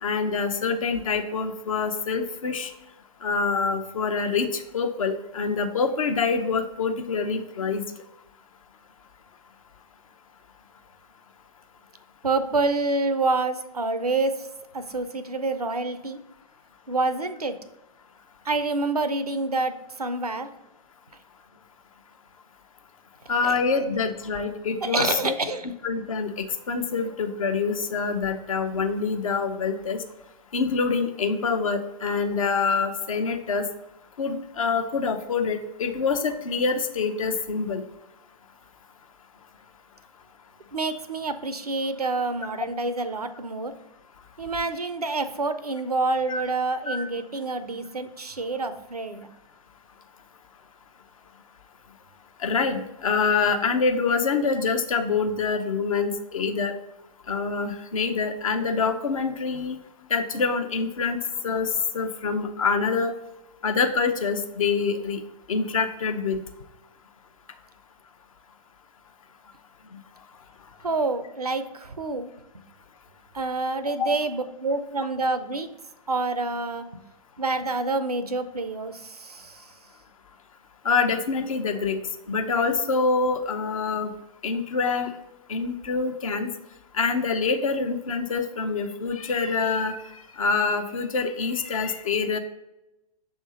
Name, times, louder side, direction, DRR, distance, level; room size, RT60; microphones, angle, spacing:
voice 1, 0.0-2.7 3.2-7.8 23.3-25.3 25.8-30.0 30.5-33.7 34.2-37.8 46.3-46.4 46.9-47.0 52.4-56.7 57.3-59.8 60.1-61.2 61.4-63.1 63.6-65.2 65.5-66.4 73.9-74.1 80.8-82.0 82.3-84.1 84.4-85.1 85.5-86.5 86.9-90.0 90.4-92.4, left 5 dB, 65° left, 6 dB, 0.7 m, -26 dB
voice 2, 12.2-14.3 14.7-16.2 16.9-17.5 18.5-20.5 23.4-23.5 24.8-25.7 40.7-43.7 44.4-49.3 70.8-72.3 73.3-75.7 76.1-76.8 77.4-79.5, right 3 dB, 85° right, 11 dB, 0.6 m, -27 dB
6.5 x 3.6 x 4.1 m, 0.93 s
figure-of-eight pair, 105°, 19 cm